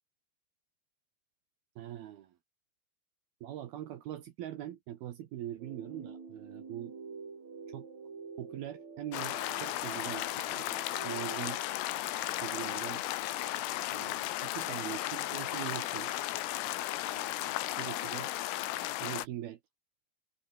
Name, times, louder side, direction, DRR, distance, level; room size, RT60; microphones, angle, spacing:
voice 1, 1.8-2.4 3.4-6.9 7.7-7.9 8.4-10.6 11.0-11.6 12.4-13.0 13.9-16.1 17.2-17.3 17.8-18.3 19.0-19.6, right 12 dB, 70° right, 2.5 m, -42 dB
sound 1, 5.6-11.6, right 5 dB, 35° right, 5.1 m, -47 dB
sound 2, 9.1-19.3, left 15 dB, 80° left, 4.1 m, -35 dB
omnidirectional pair, 5.9 m